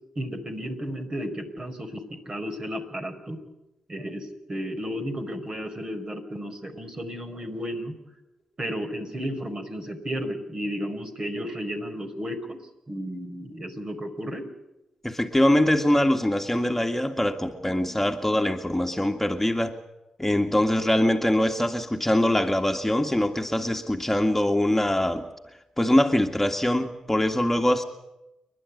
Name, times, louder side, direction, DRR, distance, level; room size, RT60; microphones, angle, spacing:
voice 1, 0.1-3.4 3.9-7.9 8.6-12.6 12.9-14.4, equal, 45° right, 4 dB, 4.9 m, -33 dB
voice 2, 15.0-19.7 20.2-25.3 25.8-27.8, left 1 dB, 10° left, 3 dB, 2.0 m, -23 dB
29.0 x 11.5 x 9.7 m, 0.96 s
supercardioid pair, 40°, 2 cm